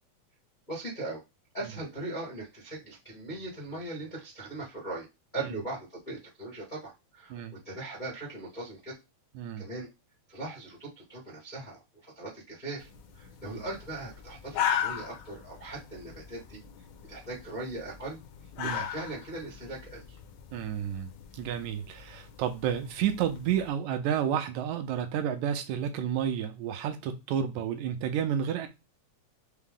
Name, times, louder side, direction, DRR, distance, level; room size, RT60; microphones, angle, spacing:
voice 1, 0.7-1.2 1.5-5.1 5.3-9.0 9.6-9.9 10.3-12.9 13.1-16.6 17.1-18.2 18.6-20.2, right 2 dB, 50° left, 0.5 m, -39 dB
voice 2, 9.4-9.7 13.4-13.6 18.6-18.8 20.5-28.7, right 9 dB, 85° right, 2.0 m, -31 dB
sound 1, 12.8-23.7, left 9 dB, 80° left, 1.8 m, -38 dB
5.6 x 2.0 x 3.6 m
omnidirectional pair, 3.4 m